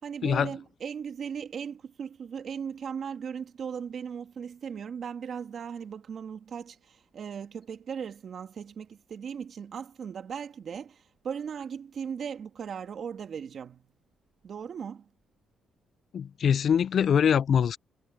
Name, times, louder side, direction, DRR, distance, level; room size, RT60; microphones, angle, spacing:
voice 1, 0.0-13.9 14.4-15.1, right 7 dB, 55° right, 2.6 m, -38 dB
voice 2, 16.1-17.8, left 8 dB, 55° left, 0.3 m, -23 dB
cardioid pair, 90°, 0 cm